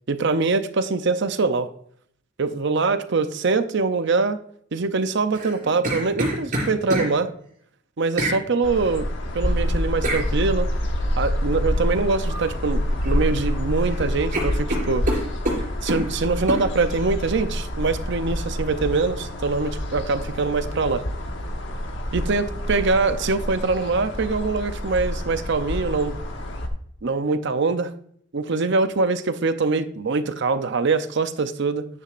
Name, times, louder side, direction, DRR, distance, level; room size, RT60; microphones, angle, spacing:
voice 1, 0.1-1.7 2.4-4.4 4.7-7.3 8.0-9.1 9.3-10.7 11.2-15.0 15.8-21.0 22.1-26.1 27.0-27.9 28.3-31.9, right 3 dB, 60° right, 11 dB, 0.6 m, -23 dB
sound 1, 5.3-7.1 8.2-8.4 10.0-10.2 12.2-12.5 12.9-13.6 13.9-14.0 14.3-16.0 16.5-16.6, right 1 dB, 40° right, 3.6 m, -26 dB
sound 2, 8.6-26.7, left 1 dB, 60° left, 1.2 m, -27 dB
9.7 x 9.5 x 2.5 m, 0.67 s
head